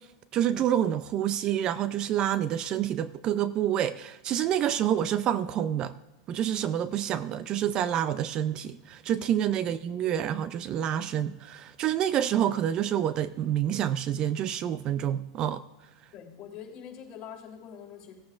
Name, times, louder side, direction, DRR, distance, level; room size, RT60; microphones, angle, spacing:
voice 1, 0.3-5.9 6.3-15.6, right 10 dB, 35° right, 0.5 m, -28 dB
voice 2, 9.6-10.0 16.1-18.1, left 8 dB, 35° left, 3.3 m, -45 dB
17.5 x 8.5 x 2.5 m
hypercardioid pair, 125°, 2 cm